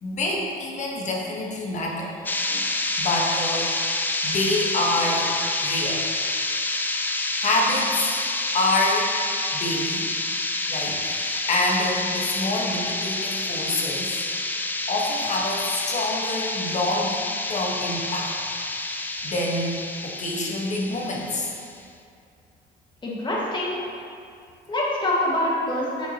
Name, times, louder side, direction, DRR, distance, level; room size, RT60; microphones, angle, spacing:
voice 1, 0.0-2.1 2.5-2.7 3.0-3.8 4.2-5.3 5.6-6.0 7.4-8.1 8.5-9.1 9.6-10.1 10.7-14.2 14.9-17.2 17.5-18.3 19.2-21.5, left 2 dB, 45° left, -1 dB, 1.2 m, -26 dB
sound 1, 2.3-21.7, left 2 dB, 10° left, 0.4 m, -28 dB
voice 2, 23.0-23.8 24.7-26.1, left 1 dB, 25° left, -5 dB, 1.6 m, -25 dB
7.1 x 5.9 x 2.8 m, 2.3 s
cardioid pair, 110°, 17 cm